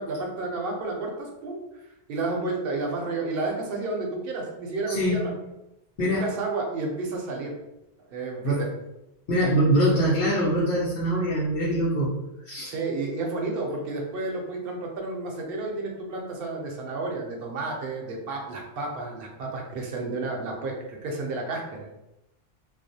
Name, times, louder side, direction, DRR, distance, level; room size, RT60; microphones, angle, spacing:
voice 1, 0.0-5.3 6.0-7.5 8.1-8.7 12.7-21.9, right 3 dB, 65° right, 0 dB, 0.7 m, -31 dB
voice 2, 4.9-5.3 6.0-6.3 8.4-8.7 9.3-12.2 12.4-12.8, equal, 65° left, -7 dB, 0.8 m, -23 dB
2.4 x 2.0 x 2.6 m, 0.92 s
omnidirectional pair, 1.1 m